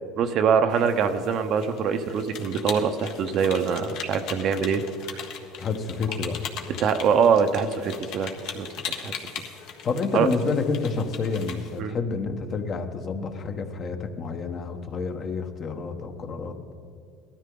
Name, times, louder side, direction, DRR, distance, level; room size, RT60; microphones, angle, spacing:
voice 1, 0.2-4.8 5.1-5.2 6.8-8.7 9.0-9.1 10.1-10.3 11.8-12.0, right 6 dB, 50° right, 8 dB, 0.8 m, -23 dB
sound 1, 0.7-11.8, left 7 dB, 65° left, 1.4 m, -39 dB
voice 2, 5.6-6.4 9.8-16.6, left 4 dB, 40° left, 6 dB, 1.1 m, -29 dB
18.0 x 13.0 x 3.8 m, 2.4 s
supercardioid pair, 120°, 0 cm